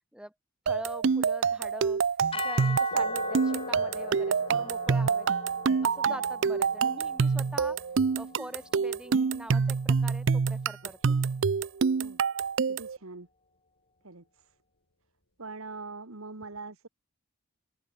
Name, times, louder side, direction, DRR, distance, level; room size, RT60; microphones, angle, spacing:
voice 1, 0.7-2.0 2.3-5.3 5.8-7.8 8.1-11.2, right 1 dB, 5° right, 1.1 m, -43 dB
sound 1, 0.7-13.0, right 5 dB, 60° right, 0.5 m, -27 dB
sound 2, 2.3-10.6, left 4 dB, 25° left, 4.7 m, -43 dB
sound 3, 2.9-9.9, left 2 dB, 80° left, 5.9 m, -43 dB
voice 2, 12.7-13.3 14.0-14.5 15.4-16.9, right 3 dB, 90° right, 2.0 m, -43 dB
open air
head